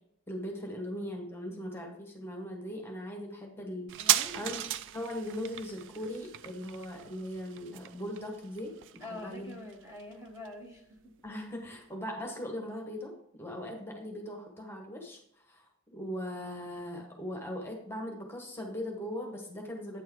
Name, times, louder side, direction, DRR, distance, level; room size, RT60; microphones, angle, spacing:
voice 1, 0.3-4.0 4.3-4.6 4.9-9.6 11.2-15.2 15.5-20.0, equal, 10° left, 1 dB, 1.2 m, -39 dB
sound 1, 3.9-11.0 11.3-11.4, right 12 dB, 55° right, 0.3 m, -35 dB
voice 2, 4.0-4.5 9.0-11.1, left 2 dB, 15° right, 0 dB, 1.2 m, -45 dB
8.9 x 4.7 x 4.6 m, 0.73 s
head